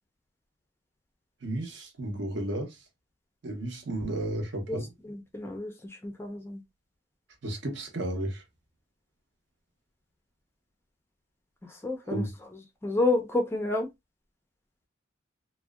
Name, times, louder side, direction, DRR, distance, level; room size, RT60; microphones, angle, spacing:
voice 1, 1.4-2.8 3.4-4.9 7.4-8.4 12.1-12.3, right 1 dB, 60° right, 0.7 m, -33 dB
voice 2, 5.0-6.6 11.7-12.2 12.8-13.9, left 2 dB, 10° left, 0.4 m, -29 dB
2.6 x 2.0 x 2.2 m
head